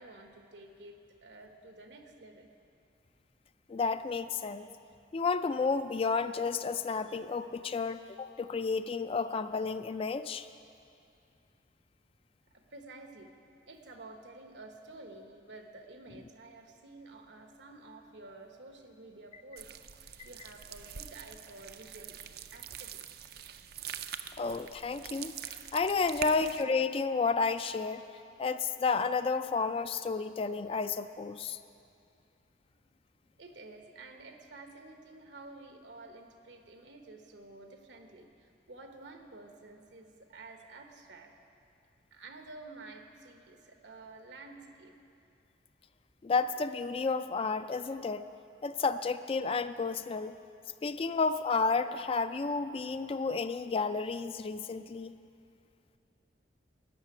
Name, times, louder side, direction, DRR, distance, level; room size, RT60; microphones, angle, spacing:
voice 1, 0.0-2.5 12.5-13.3 13.7-19.7 20.2-22.1 22.5-23.3 26.0-26.4 33.4-41.3 42.1-45.0, right 2 dB, 80° right, 4 dB, 1.2 m, -51 dB
voice 2, 3.7-4.7 5.1-10.5 20.2-20.3 24.4-25.3 25.7-28.0 28.4-31.6 46.2-48.2 48.6-50.4 50.8-55.2, left 4 dB, 30° left, 11 dB, 0.3 m, -31 dB
sound 1, 19.6-26.6, right 9 dB, 60° right, 0.5 m, -44 dB
13.0 x 6.7 x 9.7 m, 2.5 s
head